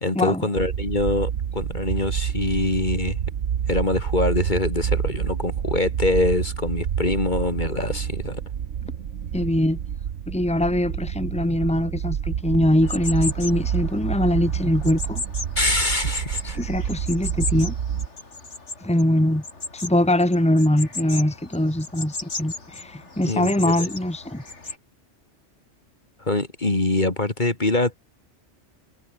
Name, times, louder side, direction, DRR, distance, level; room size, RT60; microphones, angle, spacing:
voice 1, 0.0-3.2 3.7-8.4 15.6-16.6 23.3-23.7 26.2-28.0, left 2 dB, 40° left, 2.8 m, -24 dB
sound 1, 0.6-18.1, right 8 dB, 75° right, 1.3 m, -28 dB
voice 2, 9.3-9.8 10.3-15.2 16.4-17.7 18.8-19.4 19.7-24.4, left 1 dB, 5° left, 2.1 m, -22 dB
sound 2, 12.8-24.8, left 3 dB, 70° left, 3.5 m, -36 dB
omnidirectional pair, 1.2 m